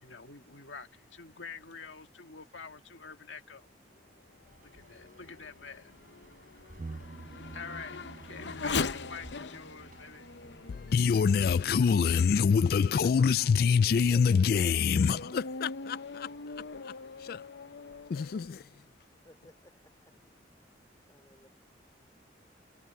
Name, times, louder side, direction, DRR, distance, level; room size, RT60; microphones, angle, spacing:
voice 1, 0.0-3.7 4.6-5.9 7.5-10.3, left 5 dB, 85° left, 1.9 m, -47 dB
sound 1, 4.4-13.2, right 1 dB, 45° right, 7.1 m, -59 dB
Race car auto racing / Accelerating revving vroom, 4.5-12.4 13.0-13.1 13.7-18.5, left 4 dB, 70° left, 0.7 m, -41 dB
sound 2, 6.8-12.6 12.8-12.9, right 3 dB, 30° right, 0.3 m, -49 dB
voice 2, 10.7-16.5 16.8-16.9 17.2-17.4 18.1-18.7, left 6 dB, 50° left, 0.3 m, -26 dB
voice 3, 13.0-15.3 19.2-20.2 21.0-21.5, left 1 dB, 20° left, 3.6 m, -58 dB
head